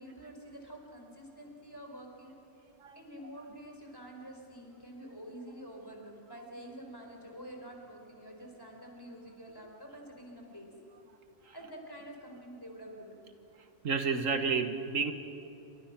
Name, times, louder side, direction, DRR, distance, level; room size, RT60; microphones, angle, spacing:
voice 1, 0.0-2.3 2.9-10.7 11.5-13.2, equal, 15° left, 1 dB, 4.5 m, -48 dB
voice 2, 13.8-15.1, right 5 dB, 80° right, 7 dB, 1.7 m, -30 dB
28.5 x 25.0 x 5.9 m, 2.8 s
omnidirectional pair, 1.3 m